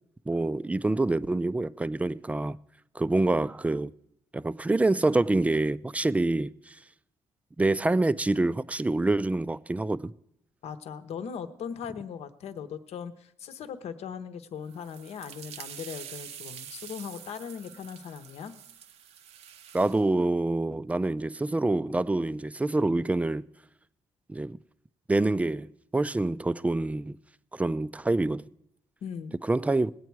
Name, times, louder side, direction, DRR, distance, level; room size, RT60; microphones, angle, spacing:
voice 1, 0.3-2.6 3.0-3.9 4.3-6.7 7.6-10.1 19.7-23.5 24.3-24.6 25.1-27.2 27.5-28.4 29.4-29.9, right 2 dB, 10° right, 0.4 m, -26 dB
voice 2, 10.6-18.5 29.0-29.4, left 7 dB, 75° left, 0.9 m, -39 dB
sound 1, 14.6-20.1, right 9 dB, 80° right, 0.7 m, -46 dB
19.5 x 8.4 x 4.6 m
cardioid pair, 100°, 11 cm